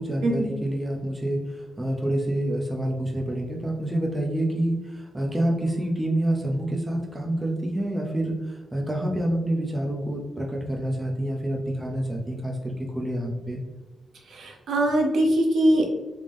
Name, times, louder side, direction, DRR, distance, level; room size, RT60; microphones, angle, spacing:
voice 1, 0.0-13.6, right 1 dB, 10° right, -1 dB, 0.5 m, -27 dB
voice 2, 14.3-15.9, right 1 dB, 65° right, 1 dB, 0.7 m, -22 dB
3.4 x 3.3 x 2.5 m, 1.1 s
wide cardioid pair, 175°, 0 cm